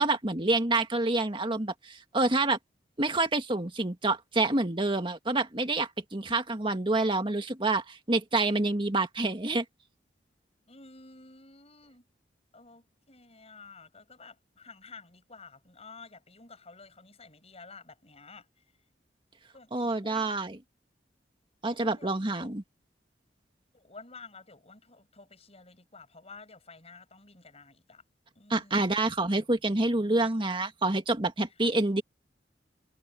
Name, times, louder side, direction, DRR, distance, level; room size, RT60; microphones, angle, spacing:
voice 1, 0.0-2.6 3.0-9.6 19.7-20.6 21.6-22.6 28.5-32.0, right 2 dB, 30° right, 2.0 m, -27 dB
voice 2, 10.7-12.0 12.5-18.5 19.5-20.3 21.6-22.5 23.7-28.0 28.4-29.0, left 4 dB, 35° left, 7.3 m, -51 dB
head